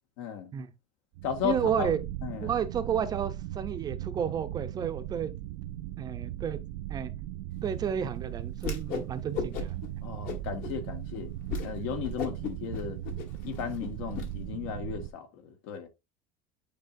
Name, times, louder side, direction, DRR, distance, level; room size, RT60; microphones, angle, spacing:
voice 1, 0.2-0.5 1.2-2.0 2.2-2.5 10.0-11.3 11.6-13.0 13.4-15.9, left 8 dB, 75° left, 1.7 m, -35 dB
sound 1, 1.2-15.1, right 13 dB, 75° right, 0.5 m, -38 dB
voice 2, 1.4-2.0 2.4-5.3 6.0-6.6 6.9-7.1 7.6-9.8, right 8 dB, 25° right, 0.6 m, -31 dB
Whoosh swoosh swish, 8.6-9.1 9.3-9.9 10.2-10.7 11.1-11.2 11.5-11.7 12.0-14.3, left 4 dB, 55° left, 1.5 m, -35 dB
9.0 x 4.4 x 2.6 m
cardioid pair, 165°, 17 cm